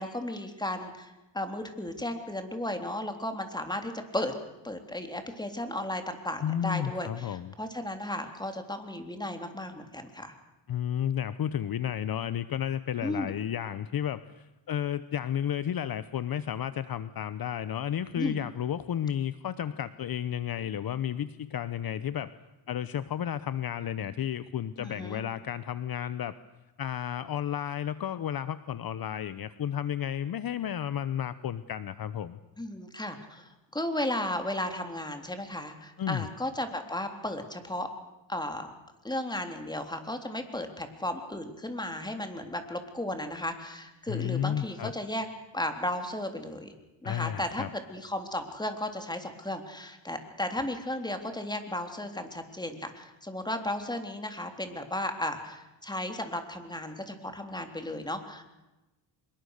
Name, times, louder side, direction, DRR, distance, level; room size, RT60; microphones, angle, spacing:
voice 1, 0.0-4.3 4.6-10.3 13.0-13.4 18.2-18.4 24.8-25.2 32.6-37.9 38.3-38.7 39.0-45.3 45.5-46.7 47.0-47.6 47.9-58.5, left 1 dB, 10° left, 6 dB, 3.5 m, -35 dB
voice 2, 6.4-7.5 10.7-22.3 22.7-26.3 26.8-32.4 36.0-36.3 44.1-44.9 47.0-47.7, left 9 dB, 50° left, 14 dB, 1.0 m, -32 dB
25.5 x 22.5 x 6.7 m, 1.0 s
cardioid pair, 100°, 46 cm